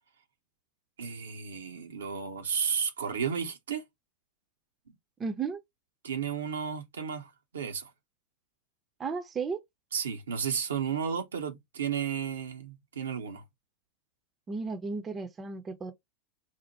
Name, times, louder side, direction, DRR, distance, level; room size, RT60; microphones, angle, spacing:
voice 1, 1.0-3.8 6.0-7.9 9.9-13.4, right 7 dB, 65° right, 0.6 m, -33 dB
voice 2, 5.2-5.6 9.0-9.6 14.5-15.9, right 4 dB, 20° right, 0.6 m, -34 dB
4.2 x 2.1 x 2.8 m
figure-of-eight pair, 90°, 0 cm